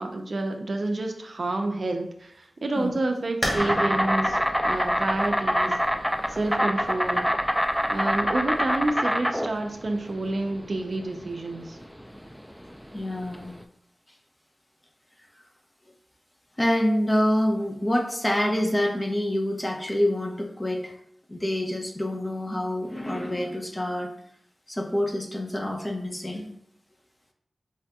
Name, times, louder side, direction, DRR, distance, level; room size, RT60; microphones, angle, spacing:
voice 1, 0.0-2.3 2.6-4.4 4.6-5.8 6.3-7.3 7.9-11.8, right 2 dB, 65° right, 4 dB, 0.5 m, -29 dB
sound 1, 3.4-8.9, equal, 60° left, 1.0 m, -35 dB
Insect, 3.6-13.6, equal, ahead, 0.4 m, -25 dB
voice 2, 12.9-13.5 16.6-20.9 21.3-24.1 24.7-26.5, left 1 dB, 25° left, 1 dB, 0.8 m, -26 dB
4.8 x 2.7 x 2.2 m, 0.70 s
cardioid pair, 40°, 0 cm